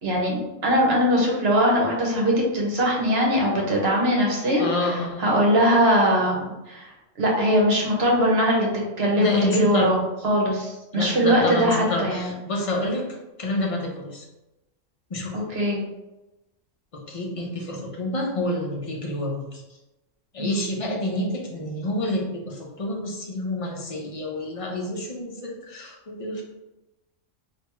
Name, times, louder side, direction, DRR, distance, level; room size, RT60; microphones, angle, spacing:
voice 1, 0.0-4.7 5.2-6.9 7.2-8.7 9.0-12.3 15.3-15.8 20.4-20.6, equal, 55° right, -2 dB, 1.1 m, -21 dB
voice 2, 4.6-5.4 9.2-9.9 10.9-13.0 13.4-14.3 15.1-15.5 16.9-19.6 20.3-26.4, left 1 dB, 40° left, -1 dB, 0.5 m, -28 dB
3.4 x 2.7 x 3.0 m, 0.99 s
omnidirectional pair, 1.3 m